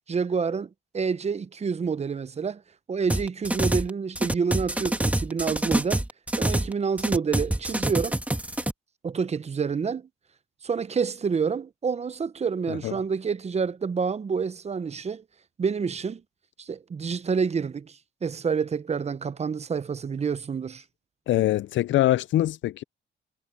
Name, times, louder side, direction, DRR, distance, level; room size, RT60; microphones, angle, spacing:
voice 1, 0.1-2.6 2.9-6.0 6.4-8.2 9.0-10.1 10.6-15.2 15.6-16.2 16.6-20.8, right 5 dB, 35° right, 0.8 m, -28 dB
sound 1, 3.1-3.9 4.1-6.7 7.0-8.7, right 1 dB, 5° right, 1.8 m, -26 dB
voice 2, 21.3-22.8, left 14 dB, 70° left, 0.5 m, -23 dB
cardioid pair, 90°, 20 cm